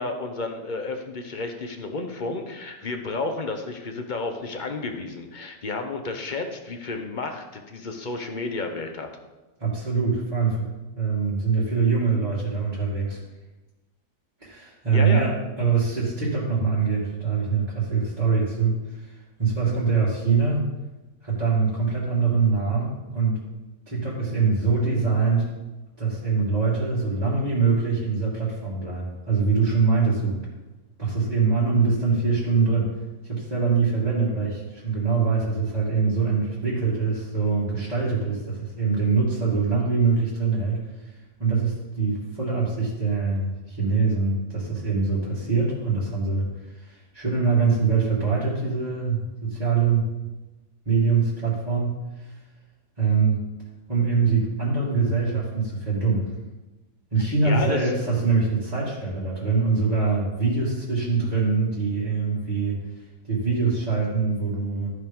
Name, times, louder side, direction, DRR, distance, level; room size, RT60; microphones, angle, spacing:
voice 1, 0.0-9.1 14.9-15.3 57.4-57.8, left 3 dB, 35° left, 5 dB, 0.9 m, -31 dB
voice 2, 9.6-10.7 10.9-13.2 14.4-20.7 21.2-23.4 23.9-25.5 26.0-30.4 31.0-32.9 33.2-50.1 50.9-52.4 53.0-53.4 53.9-56.3 57.1-64.9, right 4 dB, 25° right, -10 dB, 2.5 m, -24 dB
14.0 x 4.8 x 5.4 m, 1.1 s
omnidirectional pair, 1.7 m